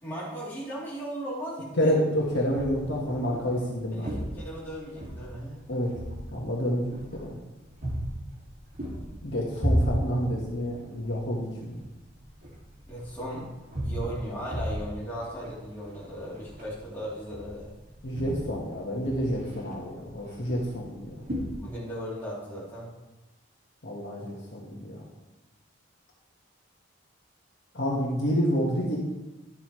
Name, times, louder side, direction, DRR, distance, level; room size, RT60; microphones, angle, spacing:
voice 1, 0.0-1.9 3.9-5.6 12.9-13.5 13.8-17.7 21.1-21.3 21.6-22.9, equal, 10° left, -9 dB, 3.3 m, -37 dB
voice 2, 1.8-4.1 5.7-5.9 6.3-7.4 9.2-11.8 18.0-21.2 23.8-25.0 27.7-29.0, equal, 60° left, -3 dB, 1.7 m, -29 dB
sound 1, 2.1-21.6, equal, 45° right, 2.4 m, -36 dB
11.5 x 8.3 x 3.2 m, 1.1 s
head